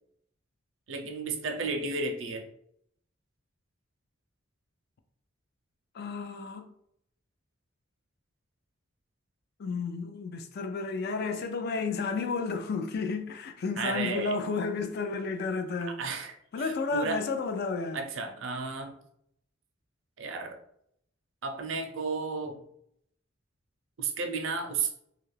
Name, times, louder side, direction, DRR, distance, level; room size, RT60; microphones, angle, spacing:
voice 1, 0.9-2.5 13.8-14.4 16.0-17.2 17.9-19.0 20.2-20.6 21.4-22.6 24.0-24.9, right 4 dB, 75° right, 0.5 m, -33 dB
voice 2, 5.9-6.7 9.6-16.0 16.5-18.0, left 4 dB, 55° left, 0.3 m, -32 dB
2.7 x 2.4 x 3.2 m
head